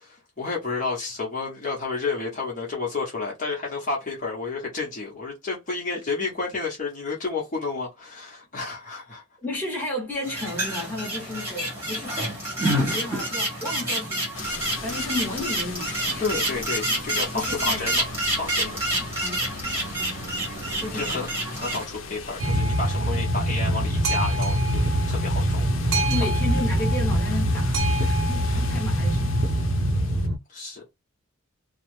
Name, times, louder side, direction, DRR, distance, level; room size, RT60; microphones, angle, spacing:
voice 1, 0.0-9.2 16.2-18.0 18.3-18.8 20.6-25.7 25.9-26.3 29.9-30.8, left 4 dB, 35° left, 0.9 m, -31 dB
voice 2, 9.4-12.2 12.7-14.4 14.8-16.2 16.9-17.8 18.9-20.3 20.8-21.3 26.1-29.4, left 2 dB, 10° left, 1.1 m, -33 dB
sound 1, 10.2-21.8, right 1 dB, 10° right, 1.2 m, -28 dB
sound 2, 14.3-30.3, left 4 dB, 65° left, 0.7 m, -39 dB
Boat Water vehicle, 22.4-30.4, right 1 dB, 75° right, 0.6 m, -23 dB
2.7 x 2.0 x 3.1 m
head